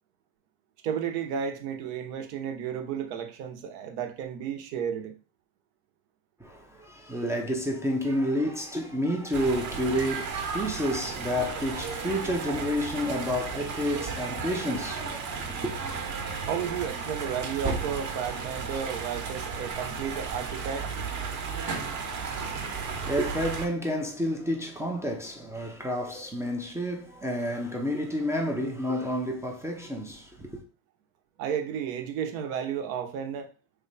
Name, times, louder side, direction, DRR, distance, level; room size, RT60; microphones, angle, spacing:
voice 1, 0.8-5.2 16.5-20.9 31.4-33.5, right 8 dB, 75° right, 0.9 m, -33 dB
voice 2, 6.4-15.7 22.4-30.6, equal, 5° right, 0.3 m, -30 dB
sound 1, 9.3-23.7, right 5 dB, 40° right, 0.9 m, -34 dB
3.2 x 2.2 x 3.9 m
supercardioid pair, 105°, 47 cm